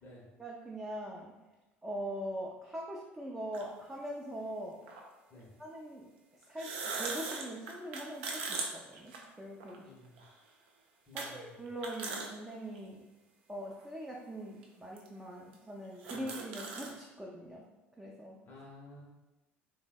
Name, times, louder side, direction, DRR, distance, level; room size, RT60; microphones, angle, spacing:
voice 1, 0.4-1.3 1.8-4.8 5.6-6.1 6.5-9.9 11.1-13.0 13.5-17.6 18.0-18.4, right 1 dB, 10° right, -3 dB, 0.4 m, -42 dB
sound 1, 3.5-3.6 4.9-5.0 6.4-9.8 10.2-10.3 11.2-11.3 11.7-12.3 12.7-12.8 13.7-13.8 14.6-14.7 15.0-15.1 15.5-15.6 15.8-16.9, right 4 dB, 70° right, 0.4 m, -39 dB
voice 2, 9.8-10.2 11.1-11.4 16.1-16.2 18.4-19.0, left 2 dB, 40° left, -4 dB, 0.7 m, -53 dB
3.2 x 2.0 x 2.3 m, 1.0 s
figure-of-eight pair, 65°, 6 cm